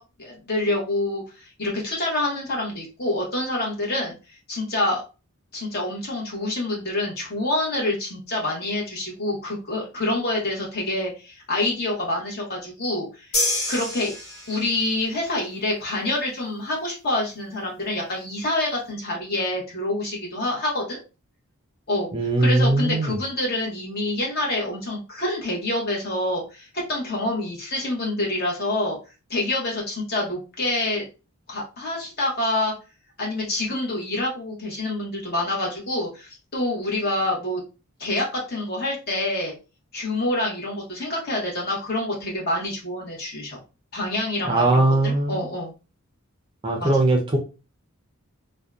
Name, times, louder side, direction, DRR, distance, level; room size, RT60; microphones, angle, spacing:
voice 1, 0.2-4.1 4.5-5.0 5.5-13.3 13.7-14.1 14.5-21.0 21.9-22.1 22.4-29.0 29.3-31.0 31.5-32.7 33.2-37.6 38.0-39.5 39.9-43.6 43.9-45.7 46.8-47.0, left 1 dB, 45° left, -2 dB, 0.9 m, -27 dB
sound 1, 13.3-14.9, left 1 dB, 90° left, 1.1 m, -27 dB
voice 2, 22.1-23.2 44.5-45.4 46.6-47.4, right 2 dB, 20° right, 1 dB, 0.4 m, -20 dB
2.6 x 2.1 x 2.3 m, 0.32 s
head